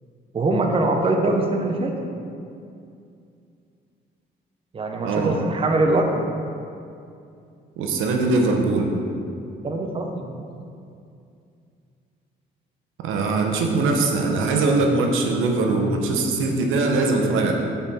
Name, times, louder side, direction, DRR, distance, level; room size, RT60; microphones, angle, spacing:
voice 1, 0.3-2.1 4.7-6.3 9.6-10.5, right 2 dB, 25° right, 3 dB, 0.6 m, -23 dB
voice 2, 5.0-5.4 7.8-8.9 13.0-17.5, right 3 dB, 85° right, 2 dB, 0.7 m, -21 dB
7.0 x 4.2 x 3.5 m, 2.5 s
cardioid pair, 90°, 20 cm